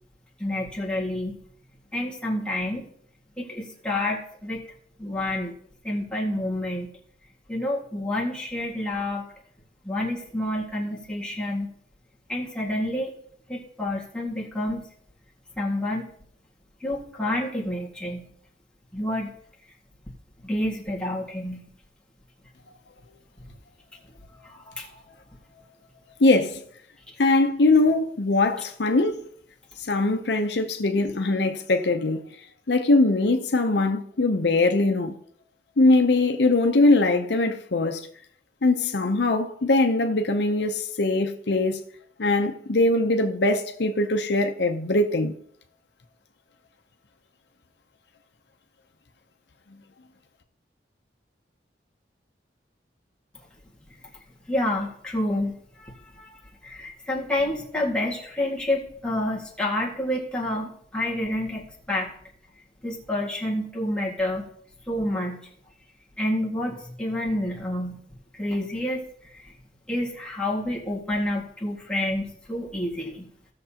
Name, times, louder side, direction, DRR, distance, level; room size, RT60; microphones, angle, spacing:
voice 1, 0.4-1.4 1.9-2.8 3.4-4.6 5.0-5.5 5.8-6.9 7.5-9.2 9.9-11.7 12.3-13.1 13.5-14.8 15.6-16.1 16.8-18.2 18.9-19.3 20.4-21.7 24.4-24.9 54.5-55.5 55.8-56.3 56.6-62.1 62.8-64.4 64.9-65.5 66.2-68.0 68.3-69.0 69.3-69.5 69.9-73.3, left 1 dB, 5° left, 1.9 m, -28 dB
voice 2, 26.2-26.6 27.2-29.2 29.9-32.2 32.7-35.1 35.8-38.0 38.6-41.8 42.2-45.3, left 2 dB, 70° left, 0.7 m, -21 dB
16.0 x 6.7 x 2.9 m
head